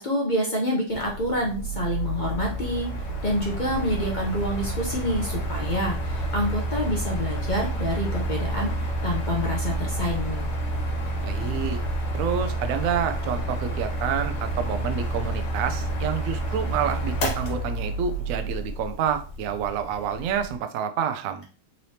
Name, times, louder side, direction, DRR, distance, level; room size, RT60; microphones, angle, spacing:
voice 1, 0.0-2.9 3.2-8.7 9.0-10.5, equal, 60° left, -1 dB, 0.5 m, -27 dB
Mechanical fan, 0.9-20.6, right 1 dB, 85° left, 1.6 m, -29 dB
voice 2, 11.2-11.8 12.1-21.4, right 8 dB, 70° right, 8 dB, 0.8 m, -28 dB
4.0 x 3.3 x 2.7 m, 0.37 s
omnidirectional pair, 1.9 m